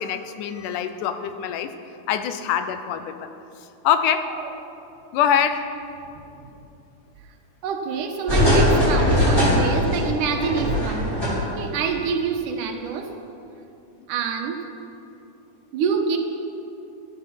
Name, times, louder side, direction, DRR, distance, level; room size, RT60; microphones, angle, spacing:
voice 1, 0.0-1.7 2.1-3.3 3.8-4.3 5.1-5.6, left 9 dB, 90° left, 9 dB, 2.3 m, -24 dB
voice 2, 6.1-6.5 7.6-13.1 14.1-14.6 15.7-16.2, right 6 dB, 85° right, 4 dB, 2.6 m, -27 dB
sound 1, 8.3-11.7 12.0-12.1, left 1 dB, 5° left, 3.9 m, -20 dB
14.0 x 12.0 x 5.9 m, 2.7 s
omnidirectional pair, 3.5 m